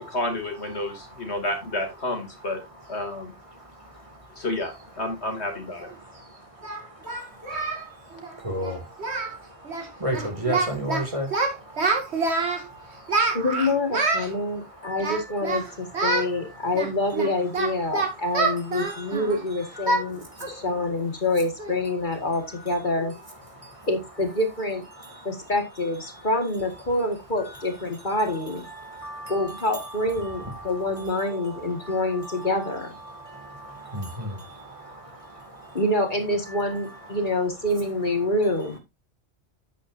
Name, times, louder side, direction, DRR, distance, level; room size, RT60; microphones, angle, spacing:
voice 1, 0.1-2.6 2.9-3.3 4.4-5.9, left 1 dB, 75° left, 2.8 m, -30 dB
voice 2, 0.6-1.4 2.3-13.4 14.2-16.8 17.9-19.3 19.8-20.8 22.4-22.9 23.3-23.9 24.9-25.5 26.1-26.3 27.4-35.8 36.4-37.4 37.7-37.8 38.2-38.3, equal, 30° right, 2.6 m, -38 dB
Singing, 5.8-5.9 6.6-7.8 8.1-8.3 8.6-8.7 9.0-9.4 9.6-9.9 10.1-11.0 11.3-12.6 13.1-14.3 15.0-15.6 15.9-16.3 16.7-19.4 19.9-20.1 20.4-20.6 21.0-21.1 21.6-21.9, right 3 dB, 75° right, 2.4 m, -26 dB
voice 3, 13.3-23.2 23.9-24.8 25.2-28.7 29.3-32.9 35.7-38.8, left 2 dB, 45° left, 2.0 m, -26 dB
10.0 x 8.3 x 2.6 m
omnidirectional pair, 1.1 m